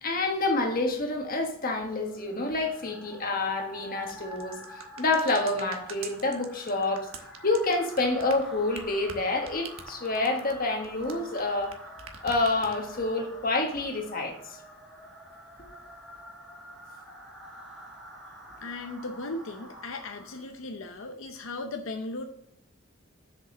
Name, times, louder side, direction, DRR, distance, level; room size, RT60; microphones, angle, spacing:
voice 1, 0.0-7.1 7.4-11.8 12.2-14.3, left 2 dB, 45° left, 3 dB, 1.4 m, -28 dB
sound 1, 1.7-20.6, right 1 dB, ahead, 1.7 m, -48 dB
sound 2, 4.0-11.7 12.0-13.0, right 6 dB, 90° right, 1.1 m, -44 dB
voice 2, 18.6-22.2, left 2 dB, 80° left, 5 dB, 0.7 m, -37 dB
6.8 x 5.3 x 6.0 m, 0.73 s
head